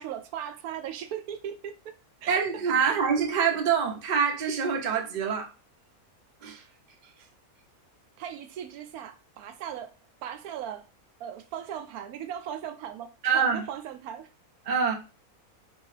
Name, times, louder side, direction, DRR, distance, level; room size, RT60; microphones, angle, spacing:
voice 1, 0.0-1.7 2.2-2.4 2.8-3.0 8.2-9.9 10.2-10.9 11.2-14.3, right 9 dB, 80° right, 1.1 m, -38 dB
voice 2, 2.3-5.5 6.4-6.6 13.2-13.6 14.7-14.9, right 6 dB, 45° right, 0.6 m, -25 dB
4.5 x 3.0 x 3.2 m
omnidirectional pair, 1.6 m